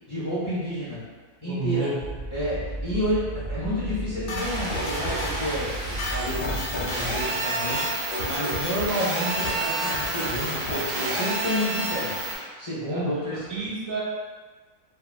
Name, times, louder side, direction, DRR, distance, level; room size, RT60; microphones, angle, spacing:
voice 1, 0.1-1.0 1.4-1.9 2.3-12.1 12.6-13.6, equal, 35° left, -11 dB, 0.5 m, -30 dB
voice 2, 1.4-2.0 12.8-14.0, right 4 dB, 70° right, -5 dB, 0.9 m, -31 dB
sound 1, 2.0-7.2, right 2 dB, 20° right, 0.8 m, -35 dB
sound 2, 4.3-5.5 5.8-7.2 7.5-7.9 8.1-9.0 9.2-9.6 9.8-11.1, left 2 dB, 65° left, 0.9 m, -33 dB
sound 3, 4.4-12.4, right 2 dB, 90° right, 1.3 m, -30 dB
2.8 x 2.5 x 2.2 m, 1.4 s
omnidirectional pair, 1.6 m